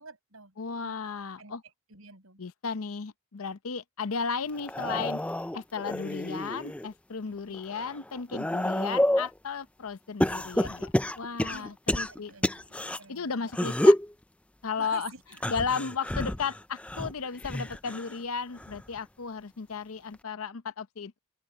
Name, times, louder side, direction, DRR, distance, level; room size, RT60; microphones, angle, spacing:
voice 1, 0.0-0.5 0.8-1.0 1.4-1.5 1.9-2.4 7.3-7.6 11.5-13.5 14.8-15.2, right 3 dB, 75° right, 5.6 m, -48 dB
voice 2, 0.6-1.6 2.4-5.2 5.5-12.3 13.1-14.0 14.6-15.1 15.5-21.2, left 5 dB, 80° left, 0.7 m, -34 dB
sound 1, 4.5-6.9 7.4-9.3 10.2-13.0 13.5-14.1 15.3-18.2 18.6-19.0 20.1-20.2, left 1 dB, 5° left, 0.3 m, -28 dB
open air
head